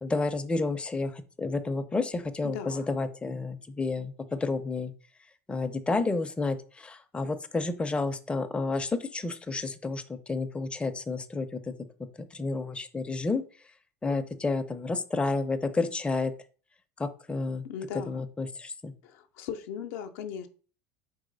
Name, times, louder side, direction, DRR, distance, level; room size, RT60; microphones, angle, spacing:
voice 1, 0.0-4.9 5.5-11.6 12.2-13.4 14.0-16.3 17.0-17.7 18.1-18.9, left 3 dB, 10° left, 8 dB, 0.5 m, -30 dB
voice 2, 2.4-3.0 17.6-18.2 19.0-20.5, left 8 dB, 70° left, 7 dB, 0.6 m, -38 dB
4.0 x 3.2 x 3.8 m, 0.39 s
hypercardioid pair, 85°, 9 cm